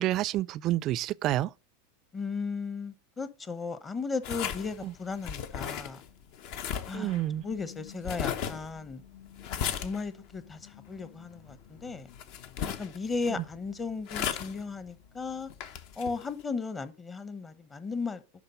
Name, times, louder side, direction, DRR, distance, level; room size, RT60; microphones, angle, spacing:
voice 1, 0.0-1.5 4.8-4.9 6.9-7.4, right 14 dB, 45° right, 0.4 m, -29 dB
voice 2, 2.1-6.0 6.9-9.0 9.6-12.1 12.6-15.5 16.0-18.2, left 4 dB, 20° left, 0.9 m, -36 dB
sound 1, 4.2-16.4, left 8 dB, 55° left, 0.9 m, -38 dB
11.0 x 3.7 x 5.4 m
hypercardioid pair, 90°, 0 cm